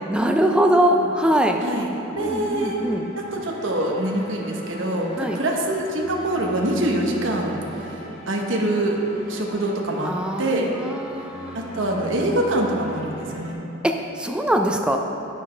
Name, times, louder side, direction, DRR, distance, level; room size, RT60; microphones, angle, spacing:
voice 1, 0.1-1.6 2.2-3.1 5.2-5.4 10.0-11.6 13.8-15.0, right 1 dB, 5° right, 3 dB, 0.4 m, -22 dB
sound 1, 2.1-13.5, equal, 50° left, 2.1 m, -39 dB
voice 2, 2.2-9.0 9.3-10.1 10.4-10.7 11.5-13.6, right 1 dB, 70° right, 0 dB, 1.0 m, -25 dB
9.7 x 8.8 x 3.3 m, 2.8 s
head